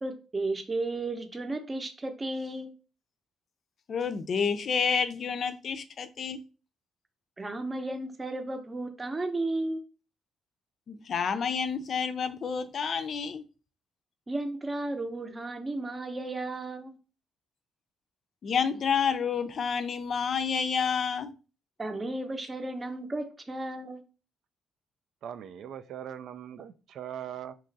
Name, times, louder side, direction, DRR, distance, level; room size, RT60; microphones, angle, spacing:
voice 1, 0.0-2.7 7.4-9.8 14.3-17.0 21.8-24.0, right 2 dB, 25° right, 0.7 m, -34 dB
voice 2, 3.9-6.4 10.9-13.4 18.4-21.3, left 6 dB, 55° left, 0.4 m, -29 dB
voice 3, 25.2-27.5, right 9 dB, 75° right, 0.4 m, -40 dB
3.0 x 2.4 x 3.9 m
cardioid pair, 90°, 0 cm